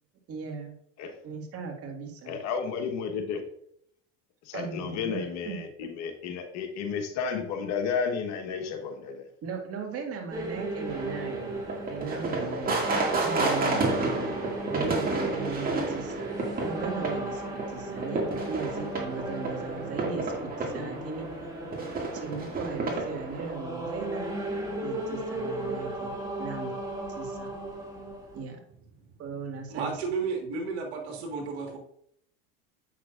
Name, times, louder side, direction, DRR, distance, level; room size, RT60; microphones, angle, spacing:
voice 1, 0.3-0.7 1.2-2.4 4.5-5.6 9.4-14.3 14.7-16.3 16.6-21.4 21.9-24.3 24.8-26.1 26.4-26.8 27.2-27.5 28.3-28.6 29.2-30.0, right 5 dB, 45° right, 3 dB, 1.7 m, -38 dB
voice 2, 2.3-3.4 4.4-9.2, left 6 dB, 55° left, 5 dB, 1.3 m, -32 dB
sound 1, 10.3-28.4, right 2 dB, 10° right, 1.7 m, -36 dB
sound 2, 10.9-23.5, right 3 dB, 25° right, 2.2 m, -31 dB
voice 3, 29.7-31.8, right 4 dB, 80° right, 2 dB, 1.7 m, -33 dB
8.1 x 6.1 x 2.5 m, 0.71 s
supercardioid pair, 100°, 32 cm